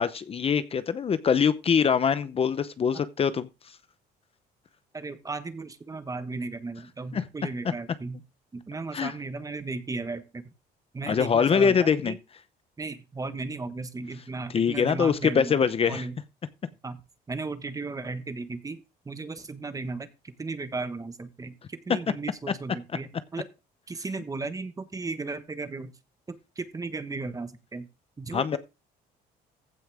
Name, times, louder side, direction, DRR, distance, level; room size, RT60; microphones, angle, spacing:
voice 1, 0.0-3.5 7.1-7.2 8.9-9.1 11.1-12.2 14.5-16.1 28.3-28.6, left 6 dB, 35° left, 0.7 m, -23 dB
voice 2, 4.9-8.2 8.5-10.4 10.9-12.2 12.8-15.6 15.9-16.2 16.8-17.0 17.3-23.5 23.9-25.9 26.3-27.9 28.2-28.6, right 3 dB, 20° right, 1.3 m, -35 dB
15.5 x 5.7 x 3.5 m
cardioid pair, 110°, 17 cm